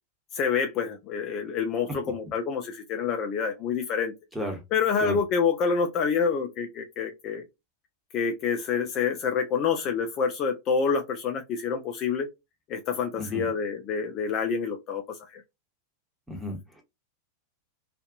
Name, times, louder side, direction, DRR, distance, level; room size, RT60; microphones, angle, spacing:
voice 1, 0.3-4.1 4.7-7.4 8.1-12.3 12.7-15.4, left 6 dB, 35° left, 0.5 m, -27 dB
voice 2, 13.2-13.5 16.3-16.8, equal, 5° right, 1.0 m, -33 dB
2.6 x 2.5 x 2.4 m
figure-of-eight pair, 90°, 0 cm